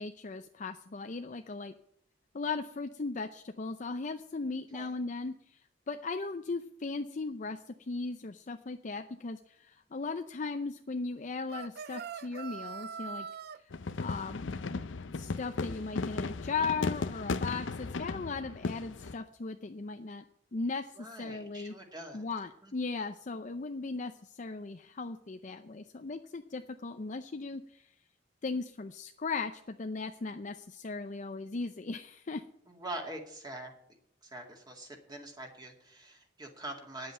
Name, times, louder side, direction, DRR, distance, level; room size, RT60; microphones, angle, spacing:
voice 1, 0.0-1.7 2.3-5.3 5.9-13.3 14.0-14.5 15.2-20.2 20.5-20.8 21.2-21.7 22.1-27.9 28.4-32.4, left 4 dB, 40° left, 7 dB, 0.5 m, -37 dB
Rooster crowing, 11.5-13.6, right 6 dB, 55° right, 0.4 m, -42 dB
sound 1, 13.7-19.2, left 3 dB, 80° left, 0.6 m, -36 dB
voice 2, 21.0-22.3 22.6-22.7 32.7-33.7 34.2-37.1, right 1 dB, 20° right, 2 dB, 2.2 m, -44 dB
9.6 x 7.9 x 8.5 m, 0.69 s
head